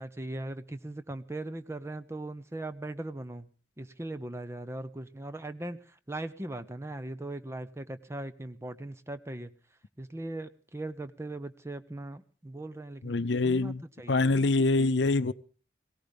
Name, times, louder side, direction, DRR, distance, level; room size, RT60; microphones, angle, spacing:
voice 1, 0.0-3.5 3.8-9.5 10.0-14.3, right 2 dB, 15° right, 0.6 m, -39 dB
voice 2, 13.0-15.3, left 3 dB, 75° left, 0.6 m, -25 dB
18.5 x 17.0 x 3.5 m
head